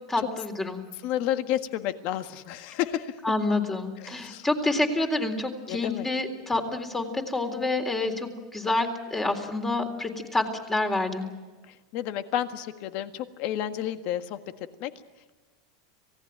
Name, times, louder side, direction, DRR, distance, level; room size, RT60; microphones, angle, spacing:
voice 1, 0.1-0.8 3.2-11.3, left 2 dB, 10° left, 5 dB, 3.7 m, -28 dB
voice 2, 1.0-3.2 4.0-4.5 5.7-6.1 11.7-14.4 14.8-14.9, left 11 dB, 50° left, 9 dB, 1.7 m, -31 dB
26.5 x 18.0 x 9.0 m, 1.3 s
supercardioid pair, 130°, 3 cm